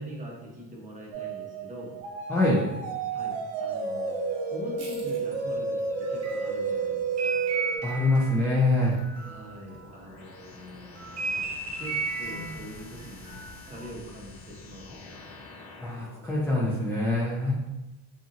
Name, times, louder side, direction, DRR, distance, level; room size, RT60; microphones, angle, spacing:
voice 1, 0.0-1.9 3.1-4.2 4.5-7.4 9.2-15.3 17.4-17.5, equal, 15° right, -3 dB, 0.7 m, -43 dB
sound 1, 1.1-7.8, right 4 dB, 85° right, 0.6 m, -31 dB
voice 2, 2.3-2.6 7.8-9.0 15.8-17.5, left 2 dB, 5° left, -6 dB, 0.4 m, -24 dB
sound 2, 4.8-10.3 10.7-13.9, right 3 dB, 35° right, 1.2 m, -36 dB
sound 3, 9.8-16.2, left 3 dB, 55° left, 0.6 m, -48 dB
2.7 x 2.5 x 2.6 m, 0.99 s
supercardioid pair, 95°, 45 cm